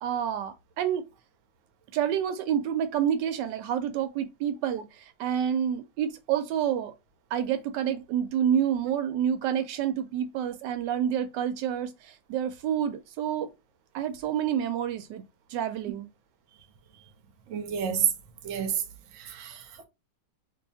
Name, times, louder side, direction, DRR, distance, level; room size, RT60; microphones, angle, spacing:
voice 1, 0.0-1.0 1.9-6.9 7.3-13.5 13.9-16.1, right 9 dB, 85° right, 1.2 m, -28 dB
voice 2, 17.5-18.1 18.4-18.8 19.2-19.6, right 9 dB, 60° right, 0.8 m, -28 dB
2.7 x 2.4 x 4.0 m
omnidirectional pair, 1.9 m